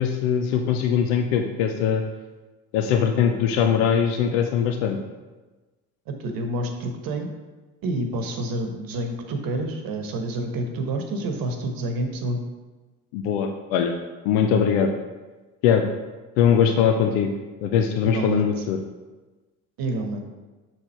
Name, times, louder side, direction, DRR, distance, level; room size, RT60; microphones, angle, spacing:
voice 1, 0.0-2.0 2.7-5.0 13.1-13.9 14.2-14.9 15.6-15.8 16.4-17.3 17.6-18.8, left 7 dB, 80° left, 4 dB, 0.7 m, -21 dB
voice 2, 6.1-7.3 7.8-12.4 18.0-18.5 19.8-20.2, right 2 dB, 60° right, 4 dB, 1.1 m, -28 dB
6.3 x 4.3 x 4.3 m, 1.2 s
hypercardioid pair, 70°, 39 cm